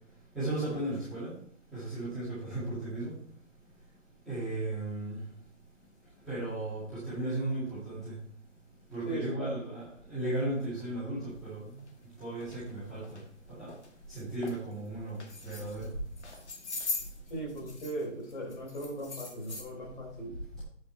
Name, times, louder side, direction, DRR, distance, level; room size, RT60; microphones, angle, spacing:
voice 1, 0.3-1.3 1.7-3.1 4.3-5.2 6.3-8.2 8.9-11.8 12.2-13.2 13.5-13.7 14.1-15.9, right 1 dB, ahead, -16 dB, 2.1 m, -35 dB
voice 2, 9.1-9.5 17.3-20.3, right 1 dB, 40° left, -2 dB, 3.9 m, -38 dB
sound 1, 11.8-11.9 12.4-12.6 13.0-13.2 13.7-13.9 14.2-14.6 15.1-15.9 16.2-18.0 18.3-19.6, left 3 dB, 60° left, 2.2 m, -40 dB
9.2 x 5.5 x 4.6 m, 0.62 s
hypercardioid pair, 175°, 38 cm